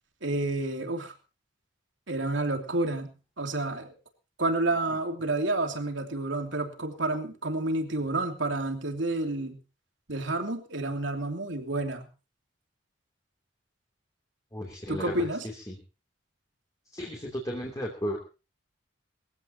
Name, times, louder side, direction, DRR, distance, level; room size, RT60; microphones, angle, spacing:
voice 1, 0.2-1.1 2.1-3.1 3.4-3.9 4.4-9.6 10.1-12.1 14.9-15.5, right 2 dB, 80° right, 4 dB, 2.9 m, -29 dB
voice 2, 14.5-15.8 16.9-18.2, equal, 20° left, -1 dB, 2.9 m, -35 dB
22.0 x 15.5 x 2.9 m, 0.32 s
head